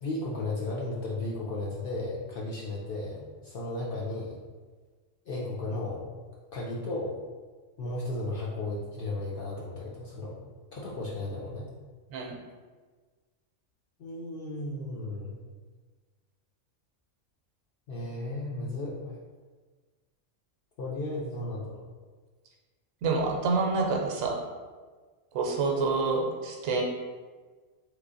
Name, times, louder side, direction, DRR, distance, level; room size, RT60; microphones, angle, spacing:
voice 1, 0.0-4.4 5.3-6.1 6.5-7.1 7.8-10.4 10.7-11.7 14.0-15.4 17.9-19.1 20.8-21.8, left 2 dB, 60° left, -5 dB, 0.6 m, -34 dB
voice 2, 23.0-24.4 25.3-26.8, right 4 dB, 85° right, -1 dB, 1.0 m, -27 dB
3.4 x 3.1 x 2.6 m, 1.4 s
omnidirectional pair, 1.4 m